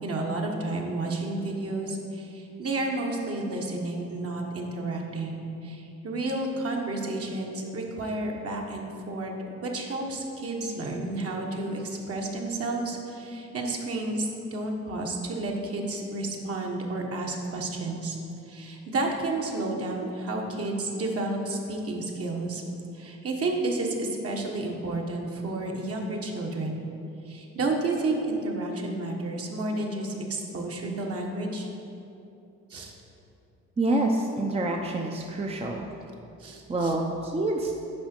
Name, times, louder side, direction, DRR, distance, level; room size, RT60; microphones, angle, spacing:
voice 1, 0.0-9.3 9.6-18.2 18.5-22.6 22.9-26.9 27.2-31.7 32.7-32.9 36.4-37.0, right 2 dB, 50° right, 0 dB, 1.3 m, -31 dB
voice 2, 33.8-35.9 36.7-37.7, right 2 dB, 20° right, 1 dB, 0.6 m, -27 dB
10.5 x 4.9 x 4.5 m, 2.7 s
cardioid pair, 90°, 30 cm